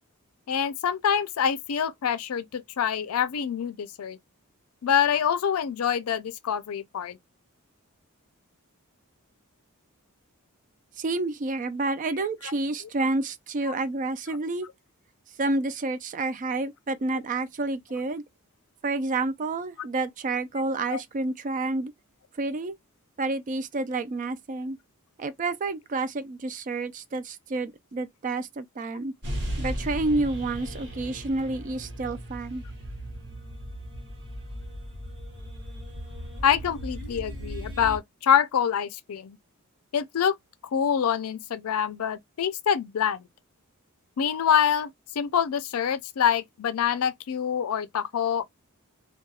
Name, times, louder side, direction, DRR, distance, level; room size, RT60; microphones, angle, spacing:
voice 1, 0.5-4.2 4.8-7.2 12.4-12.5 20.9-21.0 36.4-39.4 39.9-40.3 40.7-43.3 44.2-48.4, left 8 dB, 75° left, 0.4 m, -26 dB
voice 2, 11.0-14.7 15.4-18.2 18.8-21.9 22.4-22.7 23.2-24.8 25.2-29.1 29.6-32.6, right 2 dB, 35° right, 0.4 m, -29 dB
sound 1, 29.2-38.0, equal, 55° right, 0.9 m, -36 dB
2.3 x 2.2 x 2.7 m
head